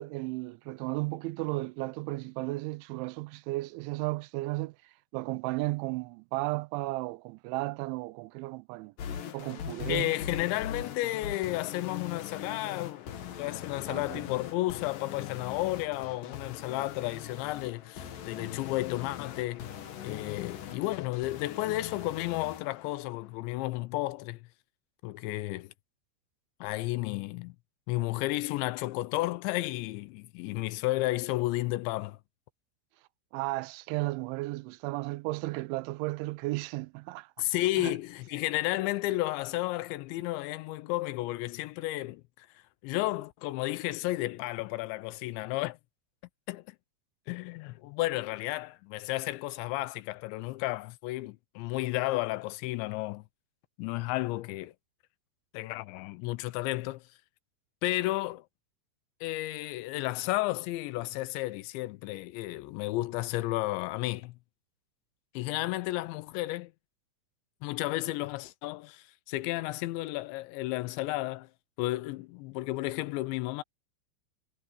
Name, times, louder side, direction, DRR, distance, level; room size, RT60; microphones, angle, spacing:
voice 1, 0.0-4.8 5.1-8.9 9.3-10.1 13.9-14.2 33.3-37.3 37.8-37.9, right 22 dB, 90° right, 3.0 m, -34 dB
sound 1, 9.0-23.0, left 9 dB, 55° left, 2.9 m, -41 dB
voice 2, 9.9-13.1 13.4-19.7 20.0-24.5 25.0-25.7 26.6-27.6 27.9-32.2 37.4-42.5 42.8-45.8 46.5-46.8 47.3-53.2 53.8-54.7 55.5-57.0 57.8-58.4 59.2-64.3 65.3-66.7 67.6-71.5 71.8-73.6, left 18 dB, 80° left, 2.9 m, -32 dB
omnidirectional pair, 5.3 m